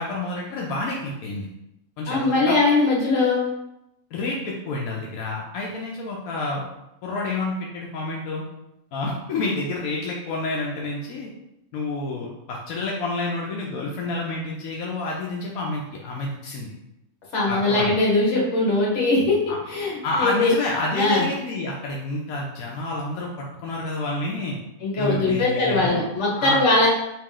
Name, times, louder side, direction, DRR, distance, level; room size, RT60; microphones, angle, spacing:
voice 1, 0.0-1.5 2.0-2.7 4.1-6.6 7.0-8.4 8.9-11.3 11.7-16.7 17.5-17.9 19.5-19.6 20.0-24.6 25.0-26.0 26.4-26.6, left 2 dB, 85° left, -2 dB, 1.1 m, -29 dB
voice 2, 2.1-3.4 17.3-19.4 19.7-20.5 20.9-21.3 24.8-26.9, left 2 dB, 55° left, -4 dB, 1.4 m, -21 dB
3.0 x 3.0 x 3.7 m, 0.85 s
omnidirectional pair, 1.4 m